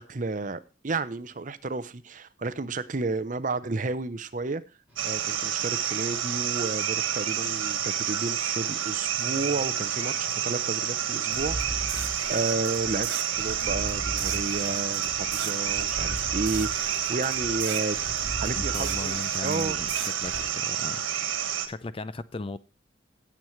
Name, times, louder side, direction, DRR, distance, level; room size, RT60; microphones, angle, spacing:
voice 1, 0.0-4.6 5.0-13.1 13.4-18.0 18.4-19.8, right 3 dB, 40° right, 0.6 m, -32 dB
sound 1, 4.9-17.2, left 2 dB, 10° right, 5.0 m, -53 dB
sound 2, 5.0-21.7, right 9 dB, 90° right, 1.5 m, -29 dB
sound 3, 11.3-20.5, right 3 dB, 60° right, 2.4 m, -37 dB
voice 2, 18.6-19.9 20.2-21.0 21.7-22.6, left 3 dB, 25° left, 0.4 m, -36 dB
16.5 x 7.3 x 3.1 m
head